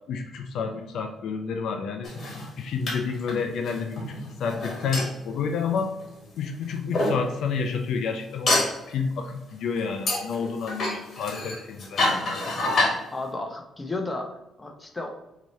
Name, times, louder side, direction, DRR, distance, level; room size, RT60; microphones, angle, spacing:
voice 1, 0.1-2.1 2.6-5.9 6.4-12.1, left 5 dB, 75° left, 5 dB, 0.4 m, -30 dB
sound 1, 2.0-6.3 6.9-7.2 8.5-8.8 10.1-13.0, left 2 dB, 55° left, 1.4 m, -27 dB
voice 2, 13.1-15.1, left 2 dB, 20° left, 3 dB, 0.8 m, -33 dB
4.6 x 2.8 x 3.0 m, 0.93 s
cardioid pair, 90°, 0 cm